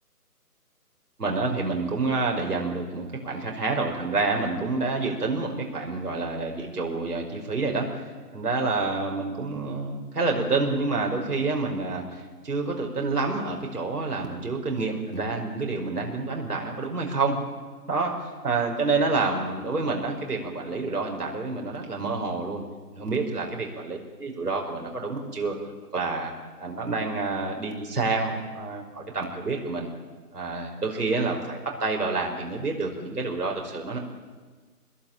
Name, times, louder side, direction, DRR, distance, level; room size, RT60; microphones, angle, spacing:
voice 1, 1.2-8.0 8.3-17.4 17.9-22.6 22.9-25.5 25.9-26.3 26.6-29.9 30.3-34.0, right 3 dB, 75° right, 1 dB, 5.6 m, -28 dB
24.0 x 21.5 x 9.0 m, 1.4 s
figure-of-eight pair, 155°, 46 cm